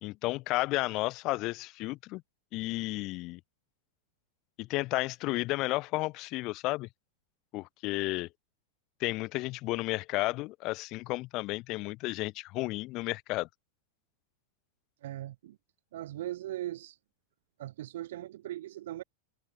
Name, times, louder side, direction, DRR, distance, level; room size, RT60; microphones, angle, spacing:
voice 1, 0.0-2.2 2.5-3.4 4.6-6.9 7.5-8.3 9.0-13.5, left 21 dB, 30° left, 1.7 m, -32 dB
voice 2, 15.0-15.6 15.9-17.0 17.6-19.0, right 14 dB, 65° right, 3.3 m, -39 dB
supercardioid pair, 175°, 0 cm